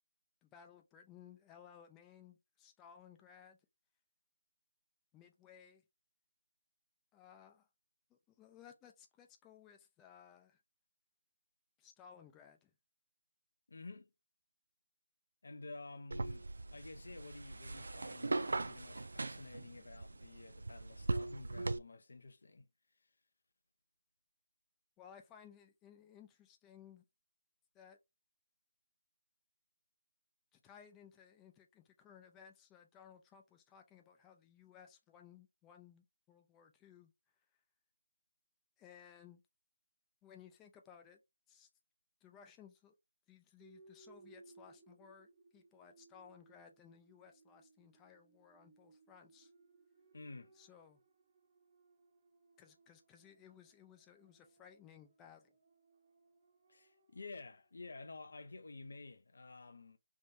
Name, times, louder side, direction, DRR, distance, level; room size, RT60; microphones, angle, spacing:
voice 1, 0.4-3.6 5.1-5.8 7.1-7.7 8.1-10.6 11.8-12.7 25.0-27.0 27.7-28.0 30.5-37.1 38.8-39.4 40.2-41.2 41.5-41.7 42.2-42.9 43.3-49.5 50.5-51.0 52.6-55.5, left 8 dB, 10° left, 0.6 m, -60 dB
voice 2, 13.7-14.1 15.4-22.7 23.0-23.1 50.1-50.5 56.7-60.0, left 3 dB, 65° left, 0.8 m, -51 dB
sound 1, 16.1-21.8, right 2 dB, 70° right, 0.4 m, -40 dB
sound 2, 43.6-57.8, right 3 dB, 35° right, 1.2 m, -66 dB
3.5 x 2.6 x 2.6 m
figure-of-eight pair, 160°, 0 cm